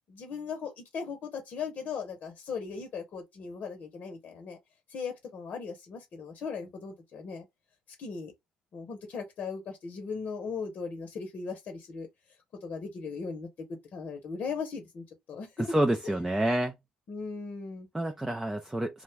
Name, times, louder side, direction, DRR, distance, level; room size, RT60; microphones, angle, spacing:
voice 1, 0.1-4.6 4.9-7.4 8.0-8.3 8.7-12.1 12.6-15.5 17.1-17.9, left 5 dB, 55° left, 0.7 m, -38 dB
voice 2, 15.6-16.7 17.9-19.0, right 1 dB, 10° right, 0.4 m, -28 dB
2.4 x 2.1 x 3.2 m
supercardioid pair, 70°, 3 cm